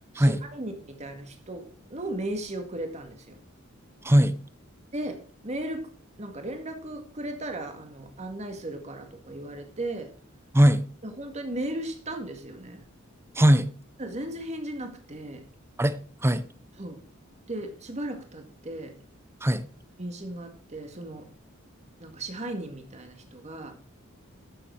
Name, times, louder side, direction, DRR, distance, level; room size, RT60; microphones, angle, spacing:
voice 1, 0.1-3.4 4.9-5.8 6.2-10.1 11.0-12.8 14.0-15.4 16.8-17.0 17.5-18.9 20.0-21.3 22.0-23.7, right 1 dB, 35° right, 2.0 m, -36 dB
voice 2, 13.4-13.7 15.8-16.4 19.4-19.6, equal, 10° right, 0.7 m, -20 dB
12.5 x 7.2 x 4.7 m
head